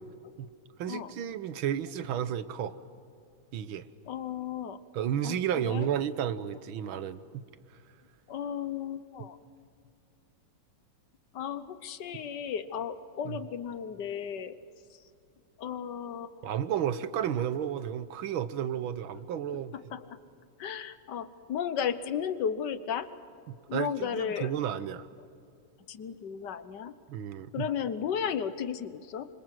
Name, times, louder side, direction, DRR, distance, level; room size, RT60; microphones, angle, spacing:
voice 1, 0.8-2.8 3.5-3.9 4.9-7.4 13.3-13.4 16.4-19.7 23.5-25.1 27.1-27.7, right 9 dB, 85° right, 13 dB, 1.8 m, -32 dB
voice 2, 4.1-4.8 5.2-5.4 5.6-5.9 8.3-9.4 11.3-14.6 15.6-16.5 19.9-20.3 20.6-23.1 23.7-24.5 25.9-26.9 27.5-29.3, left 8 dB, 60° left, 13 dB, 1.6 m, -34 dB
26.5 x 25.5 x 7.8 m, 2.5 s
omnidirectional pair, 2.2 m